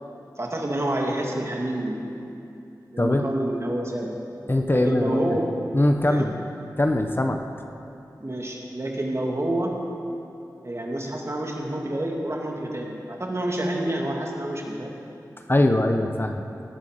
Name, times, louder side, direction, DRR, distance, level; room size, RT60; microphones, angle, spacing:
voice 1, 0.4-2.1 2.9-4.2 4.7-5.5 6.1-6.3 8.2-9.7 10.6-15.0, right 1 dB, 40° right, -1 dB, 2.5 m, -28 dB
voice 2, 4.5-5.4 5.7-6.3 6.8-7.4 15.5-16.5, left 1 dB, 30° left, 5 dB, 0.9 m, -21 dB
18.5 x 8.3 x 6.7 m, 2.7 s
cardioid pair, 45°, 7 cm